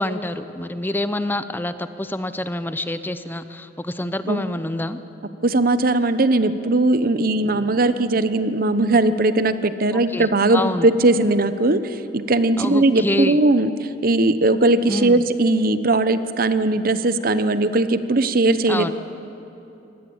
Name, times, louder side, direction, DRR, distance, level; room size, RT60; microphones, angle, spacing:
voice 1, 0.0-5.0 9.9-10.9 12.6-13.4 14.9-15.2 18.7-18.9, left 1 dB, 10° left, 11 dB, 0.7 m, -27 dB
voice 2, 5.4-11.8 12.1-18.9, right 2 dB, 55° right, 12 dB, 0.9 m, -19 dB
24.5 x 18.5 x 8.8 m, 2.9 s
head